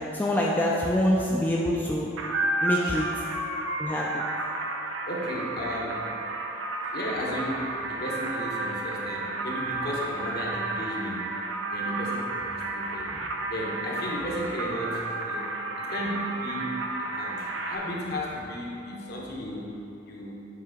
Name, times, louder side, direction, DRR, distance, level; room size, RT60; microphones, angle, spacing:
voice 1, 0.0-2.1 2.6-3.1 3.8-4.2, left 1 dB, 10° left, -4 dB, 0.3 m, -25 dB
sound 1, 2.2-17.8, right 2 dB, 75° right, 0.6 m, -32 dB
voice 2, 5.1-6.1 6.9-11.3 11.7-15.5 15.8-19.7 20.1-20.4, equal, 50° left, -3 dB, 1.0 m, -34 dB
7.3 x 3.7 x 4.9 m, 2.9 s
head